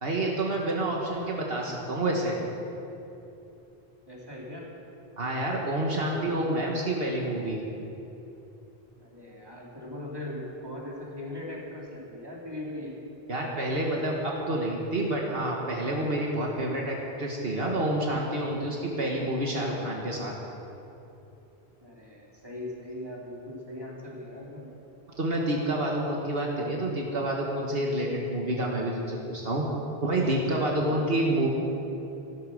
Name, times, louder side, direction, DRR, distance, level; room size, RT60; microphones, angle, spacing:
voice 1, 0.0-2.4 5.2-7.6 13.3-20.3 25.2-29.6 30.0-31.5, right 1 dB, 70° right, -1 dB, 1.8 m, -28 dB
voice 2, 4.1-4.7 6.2-6.6 9.0-12.9 21.8-24.7 30.8-31.1, left 1 dB, 25° right, -4 dB, 3.0 m, -40 dB
14.5 x 13.0 x 6.5 m, 2.9 s
omnidirectional pair, 1.0 m